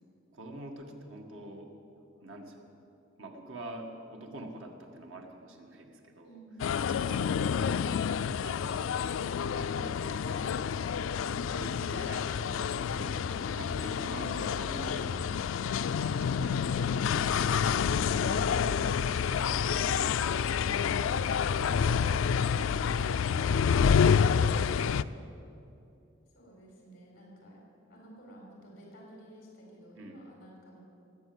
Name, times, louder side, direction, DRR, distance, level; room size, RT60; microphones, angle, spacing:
voice 1, 0.3-1.8 2.2-2.7 3.2-6.4 6.8-9.0 9.5-10.3 10.9-12.7 13.5-15.1 15.9-17.3 18.1-21.3 21.6-23.6 24.4-25.0 30.0-30.3, right 1 dB, 90° right, 3 dB, 1.8 m, -46 dB
voice 2, 6.2-6.6 12.7-13.9 14.4-15.3 25.1-25.3 26.3-27.6 27.9-30.8, equal, 50° left, -2 dB, 4.2 m, -51 dB
sound 1, 6.6-25.0, left 7 dB, 90° left, 0.4 m, -28 dB
19.5 x 8.2 x 7.8 m, 2.7 s
head